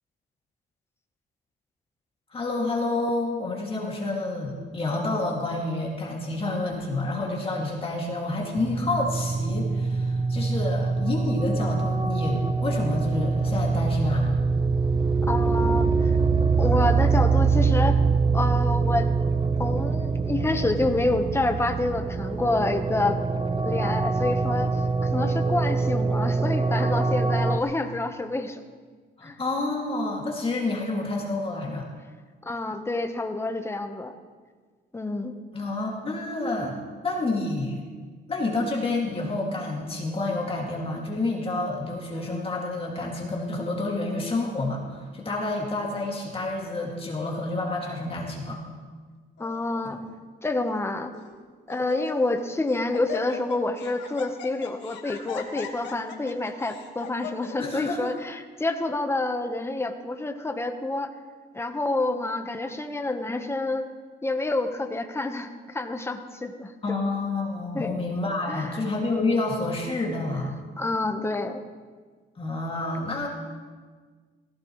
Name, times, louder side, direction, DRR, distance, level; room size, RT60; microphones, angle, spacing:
voice 1, 2.3-14.3 29.2-31.9 35.5-36.8 37.0-37.8 38.3-48.6 49.8-49.9 57.6-58.1 66.8-70.5 72.4-73.3, left 2 dB, 30° left, -2 dB, 2.4 m, -29 dB
sound 1, 8.6-27.6, right 4 dB, 25° right, 0.9 m, -24 dB
voice 2, 15.3-16.1 16.6-18.0 18.3-19.1 19.6-23.2 23.6-28.6 29.2-29.4 32.4-34.1 34.9-35.3 49.4-50.0 50.4-51.1 51.7-61.1 61.5-63.9 64.2-67.0 67.7-68.0 68.5-68.7 70.8-71.6, left 2 dB, 15° left, 7 dB, 1.1 m, -28 dB
Laughter, 49.4-49.8 50.5-50.6 51.1-51.4 51.7-52.4 52.7-57.7, left 8 dB, 75° left, 1.8 m, -39 dB
17.5 x 16.0 x 3.2 m, 1.5 s
cardioid pair, 105°, 18 cm